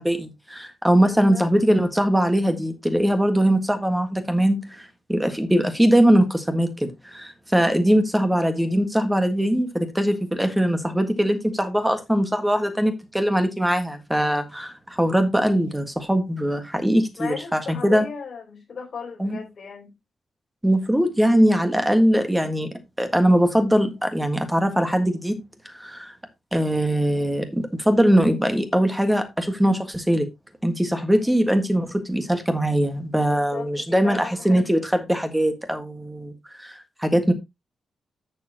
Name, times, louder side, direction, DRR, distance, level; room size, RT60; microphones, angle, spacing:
voice 1, 0.0-18.0 19.2-19.4 20.6-25.4 25.6-26.1 26.5-30.3 30.6-36.3 36.6-37.3, equal, 5° right, 1.6 m, -21 dB
voice 2, 1.0-1.5 17.2-19.9 33.2-34.6, left 6 dB, 45° left, 4.2 m, -36 dB
11.0 x 6.9 x 2.9 m
wide cardioid pair, 160°, 0 cm